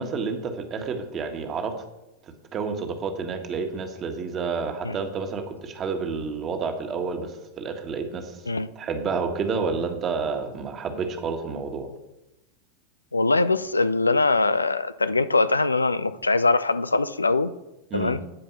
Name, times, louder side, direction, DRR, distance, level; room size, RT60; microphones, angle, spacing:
voice 1, 0.0-1.7 2.5-8.4 8.7-11.9 17.9-18.2, right 5 dB, 30° right, 6 dB, 1.6 m, -29 dB
voice 2, 13.1-17.5 17.9-18.2, left 3 dB, 80° left, 14 dB, 0.4 m, -22 dB
13.0 x 5.1 x 6.5 m, 0.96 s
figure-of-eight pair, 90°, 0 cm